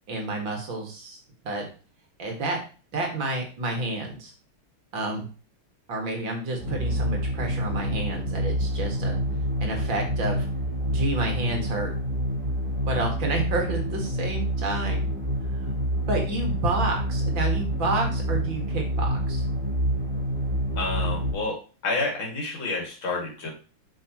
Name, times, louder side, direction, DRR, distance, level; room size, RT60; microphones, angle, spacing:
voice 1, 0.1-1.2 1.4-1.6 2.2-2.6 2.9-4.3 4.9-5.3 5.9-9.2 9.6-10.5 10.8-11.9 12.9-15.1 16.1-19.4, right 2 dB, 70° right, 2 dB, 2.7 m, -29 dB
sound 1, 6.6-21.3, equal, 40° right, 4.6 m, -27 dB
voice 2, 20.8-21.6 21.8-23.5, left 3 dB, 80° left, -1 dB, 3.2 m, -29 dB
8.2 x 6.4 x 3.1 m, 0.35 s
omnidirectional pair, 2.2 m